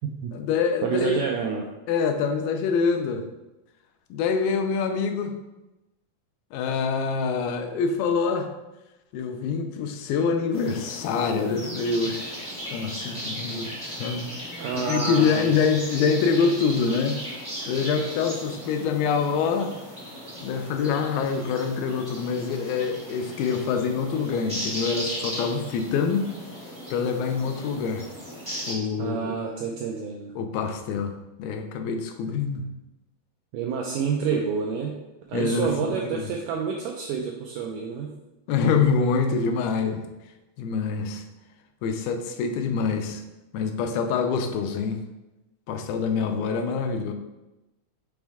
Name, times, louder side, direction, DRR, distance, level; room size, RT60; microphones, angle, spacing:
voice 1, 0.3-1.2 1.9-3.2 4.1-5.4 6.5-8.5 9.1-17.2 17.7-19.7 20.4-26.3 26.9-28.1 28.7-29.4 30.4-32.7 35.3-36.3 38.5-40.0 40.6-41.2 41.8-43.2 43.5-45.0 45.7-47.1, left 5 dB, 85° left, 6 dB, 2.5 m, -25 dB
voice 2, 0.8-1.7 14.6-15.6 29.0-30.3 33.5-35.0 35.3-38.1, right 6 dB, 90° right, 0 dB, 1.8 m, -28 dB
sound 1, 10.5-28.7, equal, 5° right, 0.5 m, -37 dB
6.2 x 4.4 x 3.5 m, 1.0 s
omnidirectional pair, 4.3 m